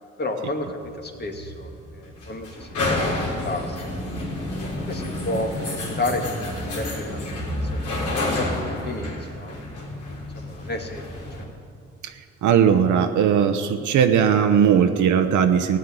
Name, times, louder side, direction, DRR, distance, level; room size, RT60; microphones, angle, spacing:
voice 1, 0.2-3.9 4.8-10.0 10.3-11.1 11.4-11.5, left 2 dB, 35° left, 3 dB, 1.9 m, -32 dB
sound 1, 0.8-11.4, left 1 dB, 75° left, 3.8 m, -29 dB
voice 2, 12.4-15.8, right 8 dB, 75° right, 7 dB, 0.9 m, -18 dB
16.0 x 6.5 x 9.9 m, 2.4 s
cardioid pair, 90°, 30 cm